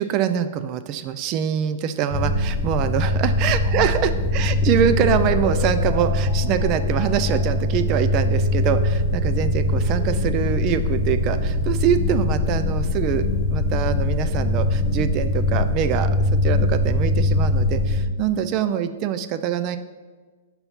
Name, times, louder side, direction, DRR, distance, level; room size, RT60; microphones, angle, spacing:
voice 1, 0.0-19.8, right 9 dB, 35° right, 10 dB, 0.3 m, -24 dB
sound 1, 2.1-18.0, left 1 dB, ahead, 1.1 m, -22 dB
sound 2, 4.8-10.1, left 1 dB, 40° left, 1.4 m, -35 dB
5.5 x 4.1 x 5.7 m, 1.4 s
figure-of-eight pair, 105°, 0 cm